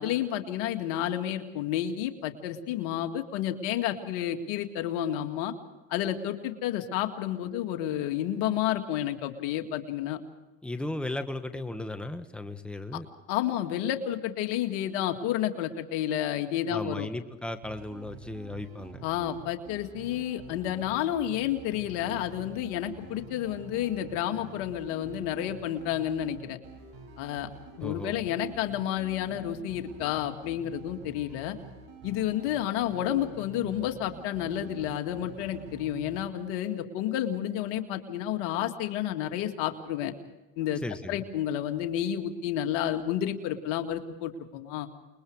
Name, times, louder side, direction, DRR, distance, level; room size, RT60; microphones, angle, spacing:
voice 1, 0.0-5.5 5.9-10.2 13.3-17.1 19.0-26.6 27.2-27.5 27.8-31.6 32.0-40.1 40.6-40.8 41.1-44.9, left 11 dB, 75° left, 6 dB, 2.2 m, -30 dB
voice 2, 10.6-13.1 16.7-19.0 27.8-28.2 40.8-41.2, left 2 dB, 5° left, 7 dB, 1.6 m, -36 dB
sound 1, 17.6-36.3, right 5 dB, 60° right, 6.9 m, -47 dB
29.0 x 22.0 x 4.8 m, 1.1 s
supercardioid pair, 90°, 39 cm